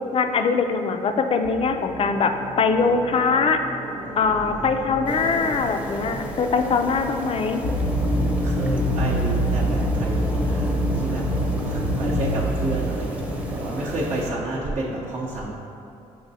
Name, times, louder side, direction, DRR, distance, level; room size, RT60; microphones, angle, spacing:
voice 1, 0.1-2.3 2.6-3.6 4.2-7.6, left 5 dB, 45° left, 6 dB, 0.4 m, -22 dB
sound 1, 1.4-14.8, right 1 dB, 80° right, 0.7 m, -37 dB
voice 2, 4.0-4.8 8.4-11.3 11.6-15.5, right 2 dB, 50° right, -5 dB, 0.6 m, -31 dB
sound 2, 5.0-14.3, right 1 dB, 10° right, 0.7 m, -35 dB
sound 3, 7.6-14.3, equal, 80° left, 0.6 m, -25 dB
6.2 x 3.1 x 2.7 m, 2.6 s
supercardioid pair, 65°, 14 cm